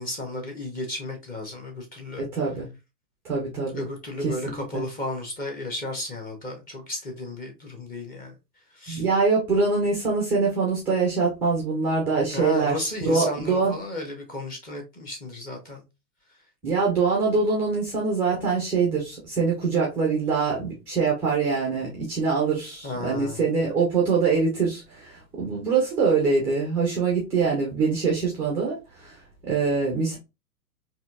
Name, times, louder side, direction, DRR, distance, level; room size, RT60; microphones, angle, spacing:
voice 1, 0.0-2.2 3.7-8.3 8.7-9.0 12.3-15.8 22.8-23.4, left 2 dB, 20° left, 1.1 m, -33 dB
voice 2, 2.2-2.7 3.2-3.9 4.2-4.3 4.7-4.8 8.9-13.7 16.6-29.2 29.5-30.2, right 4 dB, 5° right, 0.4 m, -24 dB
4.0 x 2.7 x 2.4 m
hypercardioid pair, 110°, 48 cm